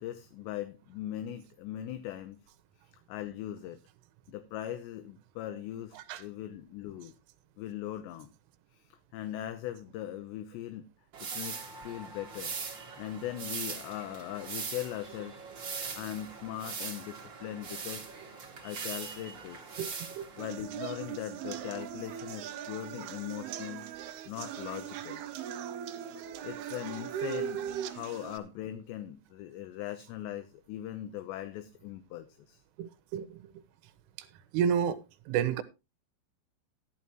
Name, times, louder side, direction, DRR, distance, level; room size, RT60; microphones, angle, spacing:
voice 1, 0.0-2.4 3.1-3.8 4.3-7.1 7.6-8.3 8.7-10.9 11.2-15.4 16.0-18.1 18.6-19.8 20.4-23.9 24.3-25.2 26.4-32.6, left 12 dB, 75° left, 2.9 m, -40 dB
sound 1, 11.1-20.5, right 5 dB, 35° right, 1.9 m, -41 dB
sound 2, 20.4-28.4, right 9 dB, 70° right, 2.7 m, -39 dB
voice 2, 32.8-33.5 34.2-34.3 34.5-35.6, right 8 dB, 85° right, 3.6 m, -31 dB
13.0 x 12.0 x 3.0 m
omnidirectional pair, 5.6 m